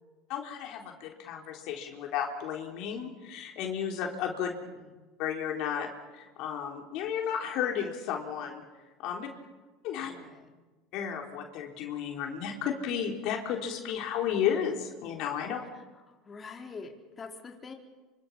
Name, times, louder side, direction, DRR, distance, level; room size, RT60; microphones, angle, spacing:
voice 1, 0.3-4.6 5.2-8.6 9.0-9.3 9.8-10.1 10.9-15.6, left 8 dB, 60° left, 2 dB, 3.8 m, -33 dB
voice 2, 4.4-4.9 10.0-10.5 15.7-17.7, left 4 dB, 30° left, 2 dB, 4.0 m, -46 dB
28.0 x 25.5 x 5.6 m, 1.2 s
hypercardioid pair, 90°, 0 cm